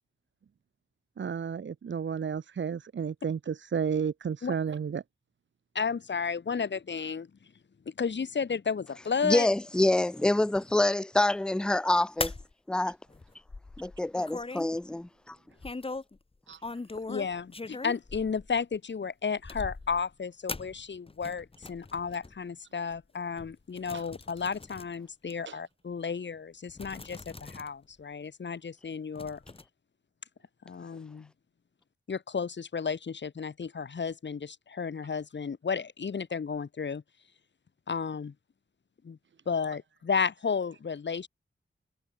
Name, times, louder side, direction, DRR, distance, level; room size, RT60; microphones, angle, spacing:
voice 1, 1.2-5.0 16.5-16.6 23.9-24.1 25.4-25.6, right 7 dB, 65° right, 1.3 m, -32 dB
voice 2, 5.7-7.3 7.8-9.5 17.1-29.4 30.6-31.3 32.1-37.0 37.9-38.3 39.0-39.2 39.4-41.3, left 5 dB, 65° left, 3.4 m, -33 dB
voice 3, 9.2-12.3 12.7-13.0 13.8-15.4, left 1 dB, 5° left, 0.5 m, -26 dB
sound 1, 12.2-12.5 13.1-14.7 15.6-16.2 16.5-18.7 19.4-20.1 20.5-22.4 22.9-23.0 23.4-24.9 25.3-25.4 26.3-26.4 26.7-27.7 28.0-28.1 29.1-29.6, left 3 dB, 25° left, 1.8 m, -40 dB
wide cardioid pair, 115°, 20 cm